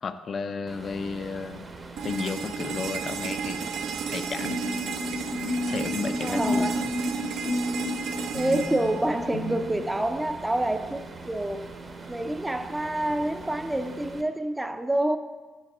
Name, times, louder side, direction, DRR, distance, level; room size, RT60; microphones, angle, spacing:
voice 1, 0.0-1.7 2.0-3.7 4.1-4.6 5.6-6.9, left 5 dB, 50° left, 0.4 m, -33 dB
sound 1, 0.7-14.2, right 3 dB, 40° right, 0.8 m, -42 dB
sound 2, 2.0-9.9, right 6 dB, 80° right, 0.5 m, -34 dB
sound 3, 4.4-10.0, left 1 dB, 75° left, 0.7 m, -31 dB
voice 2, 6.2-6.8 8.3-11.7 12.1-15.2, right 1 dB, 10° right, 0.5 m, -27 dB
5.5 x 5.1 x 6.0 m
cardioid pair, 90°, 0 cm